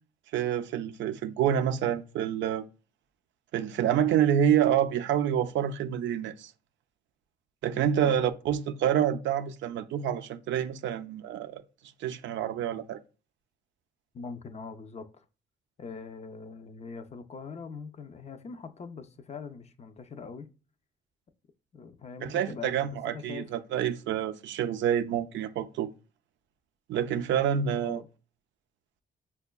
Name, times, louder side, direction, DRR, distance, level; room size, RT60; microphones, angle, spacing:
voice 1, 0.3-2.6 3.5-6.5 7.6-11.6 12.0-13.0 22.2-25.9 26.9-28.0, right 9 dB, 70° right, 0.4 m, -27 dB
voice 2, 14.1-15.3 15.8-20.5 21.7-23.5 27.7-28.1, left 5 dB, 35° left, 0.4 m, -42 dB
5.5 x 2.2 x 2.2 m
cardioid pair, 90°, 20 cm